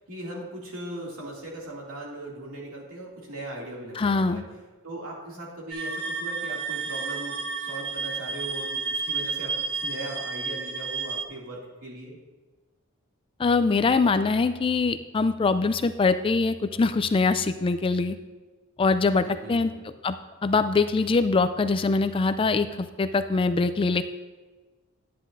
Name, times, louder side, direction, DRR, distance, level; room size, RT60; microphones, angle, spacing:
voice 1, 0.0-4.4 4.8-12.2 19.2-19.9, right 1 dB, 85° right, -3 dB, 2.4 m, -39 dB
voice 2, 4.0-4.4 13.4-18.2 18.8-19.7 20.0-20.2 20.4-24.0, left 4 dB, 25° left, 11 dB, 0.3 m, -23 dB
sound 1, 5.7-11.2, right 4 dB, 50° right, 0.7 m, -31 dB
10.0 x 9.4 x 2.6 m, 1.3 s
head